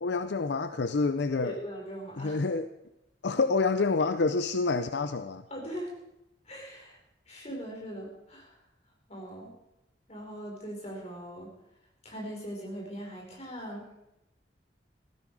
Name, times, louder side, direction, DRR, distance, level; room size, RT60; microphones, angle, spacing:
voice 1, 0.0-1.6 2.2-2.7 3.2-5.4, left 4 dB, 70° left, 10 dB, 0.6 m, -27 dB
voice 2, 1.4-2.4 5.5-5.9 6.4-7.0 7.3-8.5 9.1-9.5 10.1-11.5 12.0-13.8, equal, 40° left, -1 dB, 4.9 m, -40 dB
15.5 x 14.0 x 4.9 m, 0.88 s
head